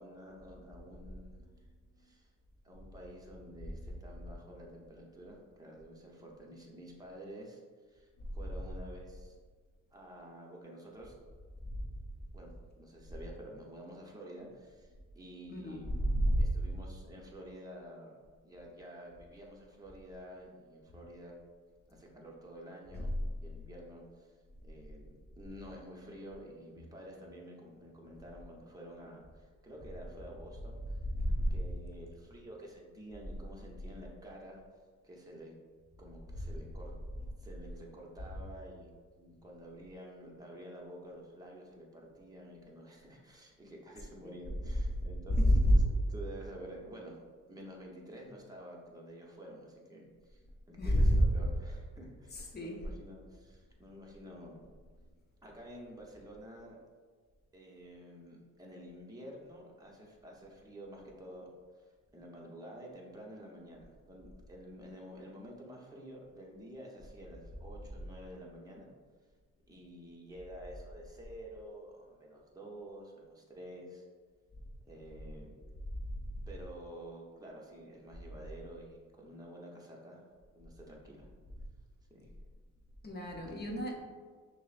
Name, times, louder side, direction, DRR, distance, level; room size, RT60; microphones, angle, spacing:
voice 1, 0.0-1.5 2.0-2.3 2.6-7.6 7.9-9.3 9.9-11.1 12.3-15.9 16.4-18.1 18.4-21.3 21.9-24.3 24.6-25.1 25.3-31.0 31.5-34.6 35.0-35.5 36.0-36.9 37.4-38.9 39.2-47.2 47.5-54.6 55.4-56.8 57.5-61.5 62.1-68.9 69.7-74.1 74.9-75.6 76.5-80.3 80.5-81.3 82.1-82.3 83.5-83.6, equal, 10° right, -2 dB, 0.8 m, -50 dB
voice 2, 15.5-16.4 31.2-31.6 44.2-44.3 45.3-45.7 50.8-51.2 52.3-52.8 83.0-84.0, equal, 35° left, 0 dB, 0.7 m, -29 dB
6.1 x 2.1 x 2.4 m, 1.5 s
cardioid pair, 90°, 30 cm